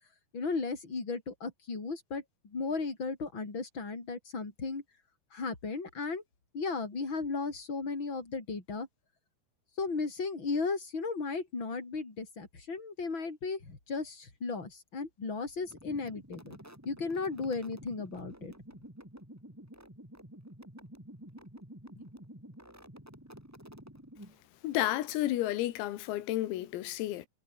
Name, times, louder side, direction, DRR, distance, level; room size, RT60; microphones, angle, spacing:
voice 1, 0.3-4.8 5.3-6.2 6.5-8.9 9.8-16.6 16.9-18.5, left 4 dB, 25° left, 5.5 m, -35 dB
sound 1, 15.6-24.5, equal, 5° right, 3.8 m, -50 dB
voice 2, 24.6-27.3, left 14 dB, 90° left, 4.4 m, -31 dB
omnidirectional pair, 5.9 m